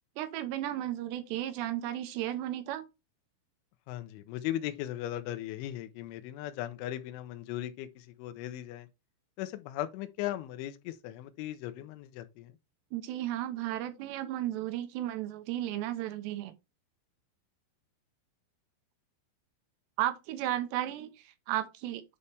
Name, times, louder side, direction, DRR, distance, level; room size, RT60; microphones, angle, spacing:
voice 1, 0.2-2.8 12.9-16.6 20.0-22.0, right 13 dB, 80° right, 2.6 m, -34 dB
voice 2, 3.9-8.9 9.4-12.5, left 13 dB, 85° left, 3.2 m, -38 dB
9.7 x 4.2 x 3.3 m
omnidirectional pair, 5.6 m